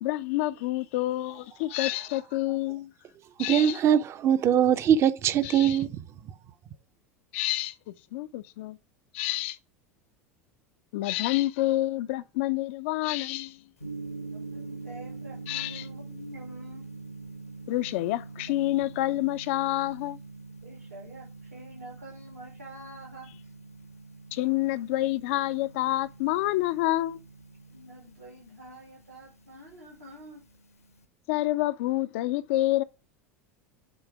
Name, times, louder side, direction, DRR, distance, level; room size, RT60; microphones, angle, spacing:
voice 1, 0.0-2.9 3.4-3.8 5.4-5.8 7.3-8.8 9.1-9.6 10.9-13.6 15.5-15.9 17.7-20.2 24.3-27.2 31.3-32.8, left 17 dB, 55° left, 0.4 m, -28 dB
voice 2, 3.5-5.9, right 9 dB, 35° right, 0.6 m, -22 dB
Gong, 13.8-31.0, right 3 dB, 85° left, 1.0 m, -44 dB
voice 3, 14.3-16.8 20.6-23.3 27.7-30.4, equal, 80° right, 2.5 m, -47 dB
8.2 x 3.2 x 4.6 m
figure-of-eight pair, 80°, 8 cm